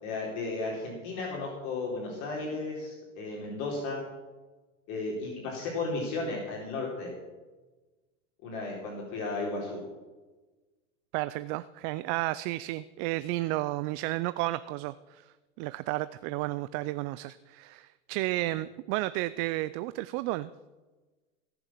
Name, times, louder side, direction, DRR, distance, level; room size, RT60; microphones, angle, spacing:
voice 1, 0.0-4.0 4.9-7.1 8.4-9.8, left 3 dB, 50° left, -2 dB, 4.1 m, -34 dB
voice 2, 11.1-20.5, right 18 dB, 40° right, 15 dB, 0.4 m, -32 dB
18.0 x 7.1 x 7.5 m, 1.2 s
hypercardioid pair, 120°, 38 cm